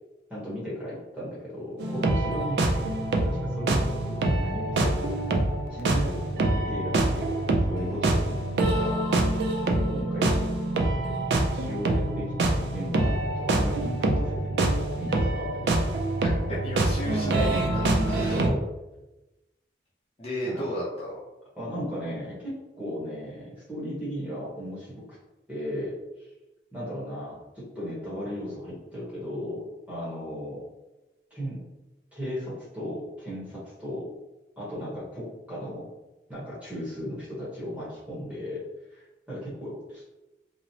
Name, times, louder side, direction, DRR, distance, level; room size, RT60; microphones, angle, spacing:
voice 1, 0.3-5.3 5.7-10.5 11.5-15.8 18.1-18.7 20.4-20.6 21.6-24.9 25.5-25.9 26.2-26.3 26.7-30.6 31.3-31.7 32.1-34.1 34.6-35.9 36.3-38.6 38.9-40.1, equal, 10° right, -8 dB, 0.9 m, -36 dB
sound 1, 1.8-18.5, right 2 dB, 65° right, 0.3 m, -25 dB
voice 2, 16.2-18.4 20.2-21.2, equal, 35° left, -6 dB, 0.5 m, -33 dB
2.8 x 2.0 x 2.7 m, 1.0 s
head